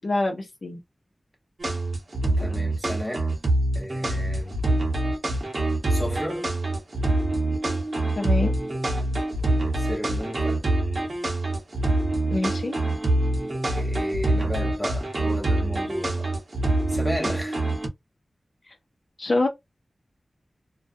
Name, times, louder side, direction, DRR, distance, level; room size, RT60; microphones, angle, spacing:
voice 1, 0.0-0.8 8.2-8.5 12.3-12.8 19.2-19.5, left 2 dB, 55° left, 0.7 m, -25 dB
sound 1, 1.6-17.9, right 1 dB, 55° right, 0.9 m, -25 dB
voice 2, 2.4-3.3 3.7-4.6 5.9-6.5 9.5-10.6 13.7-16.4 16.9-17.6, equal, 5° left, 1.1 m, -33 dB
2.4 x 2.2 x 2.5 m
wide cardioid pair, 85°, 0 cm